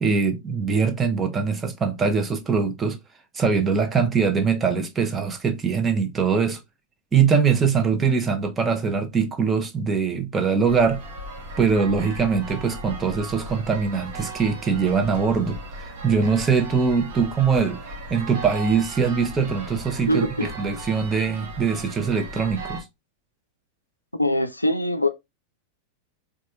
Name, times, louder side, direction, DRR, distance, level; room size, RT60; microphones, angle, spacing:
voice 1, 0.0-3.0 3.3-6.6 7.1-11.0 11.6-15.6 16.0-17.8 18.1-22.8, right 5 dB, 15° right, 0.7 m, -22 dB
sound 1, 10.6-22.8, right 1 dB, 55° right, 0.9 m, -37 dB
voice 2, 20.1-20.5 24.2-25.1, left 1 dB, 85° left, 0.4 m, -22 dB
4.2 x 2.3 x 2.8 m
figure-of-eight pair, 90°, 0 cm